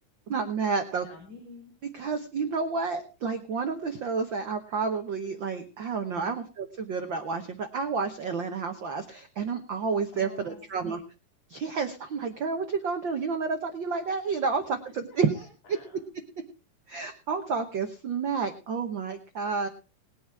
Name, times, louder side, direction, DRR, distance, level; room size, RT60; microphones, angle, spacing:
voice 1, 0.3-1.1 1.9-11.0 11.5-15.4 16.9-19.7, right 5 dB, 80° right, 6 dB, 1.0 m, -30 dB
voice 2, 1.0-1.7 6.1-6.4 10.1-11.0 14.8-16.0, left 4 dB, 55° left, 1 dB, 4.8 m, -49 dB
20.0 x 7.9 x 4.7 m, 0.34 s
omnidirectional pair, 3.7 m